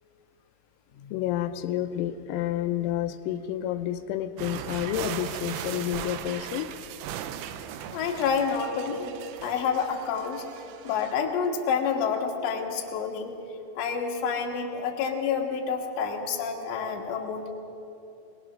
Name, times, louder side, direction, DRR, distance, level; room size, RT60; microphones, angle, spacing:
voice 1, 1.1-6.7, left 12 dB, 90° left, 8 dB, 3.4 m, -30 dB
sound 1, 4.4-11.2, right 10 dB, 75° right, 2.8 m, -38 dB
voice 2, 7.9-9.2 9.4-10.5 10.9-13.3 13.8-17.5, left 6 dB, 65° left, 1 dB, 3.6 m, -28 dB
22.0 x 20.5 x 6.2 m, 2.8 s
omnidirectional pair, 5.9 m